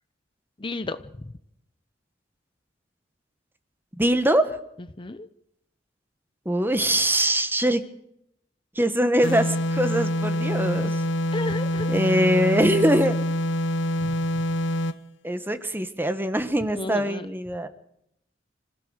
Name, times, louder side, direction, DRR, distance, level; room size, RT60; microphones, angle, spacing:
voice 1, 0.6-1.3 5.0-5.3 11.3-11.9 14.0-14.2 16.7-17.3, left 2 dB, 25° left, 11 dB, 0.7 m, -33 dB
voice 2, 4.0-4.6 6.4-7.8 8.8-10.9 11.9-13.2 15.2-17.7, right 1 dB, 10° right, 10 dB, 1.4 m, -22 dB
sound 1, 9.2-15.0, left 1 dB, 75° left, 1.0 m, -26 dB
26.5 x 16.0 x 6.5 m, 0.77 s
head